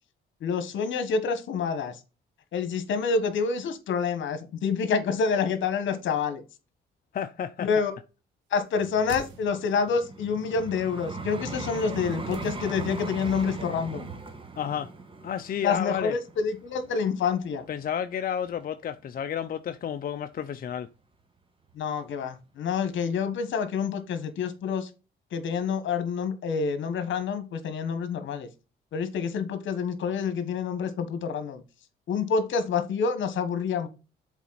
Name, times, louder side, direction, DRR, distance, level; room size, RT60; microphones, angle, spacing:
voice 1, 0.4-2.0 2.5-6.4 7.6-7.9 8.5-14.1 15.6-17.7 21.8-24.9 25.3-28.5 28.9-31.6 32.1-33.9, left 5 dB, 70° left, 1.4 m, -27 dB
voice 2, 7.1-7.7 14.6-14.9 15.2-16.1 17.7-20.9, left 8 dB, 50° left, 0.5 m, -31 dB
Vehicle, 8.7-17.8 18.4-18.6, right 3 dB, 25° right, 1.4 m, -39 dB
sound 1, 8.7-9.9 12.3-13.2 13.5-13.6, right 6 dB, 75° right, 1.4 m, -45 dB
7.2 x 4.1 x 4.1 m
cardioid pair, 90°, 20 cm